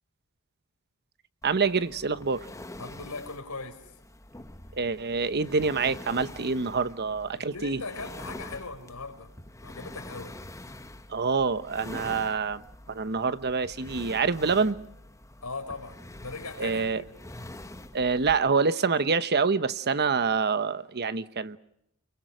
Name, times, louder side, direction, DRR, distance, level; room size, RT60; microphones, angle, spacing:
sound 1, 1.4-18.4, left 1 dB, 15° left, 1.1 m, -45 dB
voice 1, 1.4-2.5 4.7-7.8 11.1-12.6 12.9-14.8 16.6-17.0 17.9-21.6, right 4 dB, 50° right, 1.0 m, -26 dB
voice 2, 2.8-3.9 7.4-9.3 9.6-10.4 15.4-17.1, left 3 dB, 85° left, 4.8 m, -39 dB
29.5 x 23.0 x 6.3 m
head